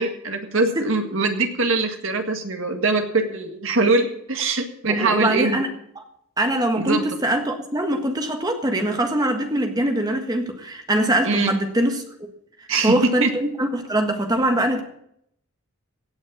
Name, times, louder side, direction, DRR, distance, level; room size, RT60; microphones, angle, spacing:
voice 1, 0.0-5.7 6.8-7.1 11.2-11.5 12.7-13.3, right 3 dB, 60° right, 5 dB, 1.8 m, -22 dB
voice 2, 4.9-5.7 5.9-6.0 6.4-12.0 12.6-14.8, right 1 dB, 15° right, 5 dB, 1.5 m, -23 dB
17.0 x 6.5 x 7.3 m, 0.72 s
head